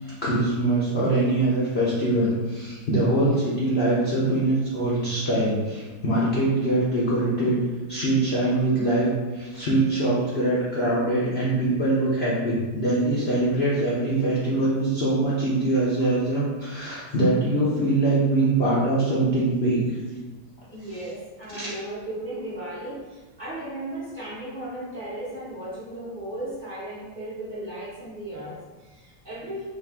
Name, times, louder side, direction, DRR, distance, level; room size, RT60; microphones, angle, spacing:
voice 1, 0.0-7.6 7.9-19.8 21.5-21.7, right 2 dB, 55° left, -8 dB, 0.7 m, -23 dB
voice 2, 20.7-29.7, right 1 dB, 35° right, -10 dB, 1.0 m, -36 dB
3.9 x 2.6 x 3.5 m, 1.3 s
omnidirectional pair, 1.8 m